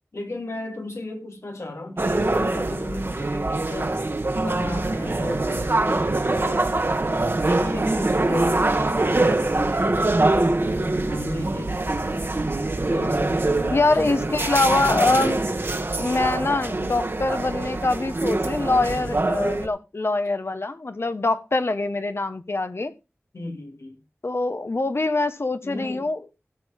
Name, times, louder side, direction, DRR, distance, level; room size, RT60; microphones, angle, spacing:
voice 1, 0.1-4.0 4.4-6.7 7.3-12.5 12.9-14.4 23.3-24.0 25.6-26.1, left 2 dB, 90° left, 2.6 m, -35 dB
sound 1, 2.0-19.7, right 2 dB, 55° right, 1.4 m, -24 dB
voice 2, 13.7-15.4 16.0-22.9 24.2-26.2, left 2 dB, 60° left, 1.2 m, -24 dB
16.5 x 7.3 x 3.6 m
wide cardioid pair, 60°, 5 cm